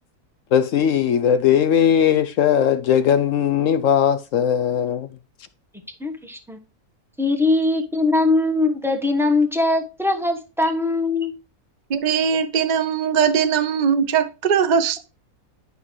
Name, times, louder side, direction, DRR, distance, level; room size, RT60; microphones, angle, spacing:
voice 1, 0.5-5.1, left 9 dB, 70° left, 0.8 m, -18 dB
voice 2, 6.0-6.6 7.2-11.3, left 2 dB, ahead, 0.9 m, -21 dB
voice 3, 11.9-15.0, right 7 dB, 50° right, 0.5 m, -20 dB
11.0 x 5.7 x 3.1 m
omnidirectional pair, 1.6 m